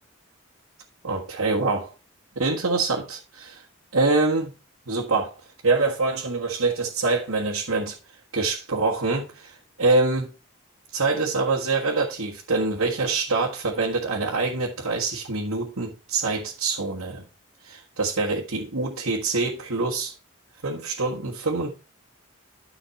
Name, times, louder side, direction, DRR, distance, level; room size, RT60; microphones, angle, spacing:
voice 1, 1.0-1.9 2.3-3.6 3.9-4.5 4.9-5.3 5.6-8.0 8.3-10.2 10.9-17.2 17.6-20.1 20.6-21.7, right 3 dB, 85° right, 1.7 m, -25 dB
10.0 x 5.7 x 4.4 m
head